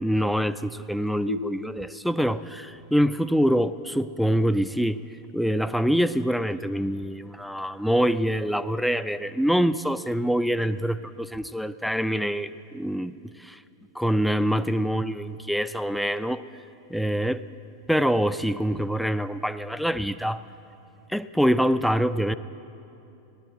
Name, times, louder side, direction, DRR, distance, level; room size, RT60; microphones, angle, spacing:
voice 1, 0.0-5.0 5.3-13.6 13.9-16.4 16.9-17.4 17.9-20.4 21.1-22.3, equal, ahead, 12 dB, 0.3 m, -25 dB
sound 1, 1.3-4.7, left 1 dB, 85° right, 0.5 m, -39 dB
16.0 x 12.0 x 7.6 m, 2.8 s
figure-of-eight pair, 90°, 0 cm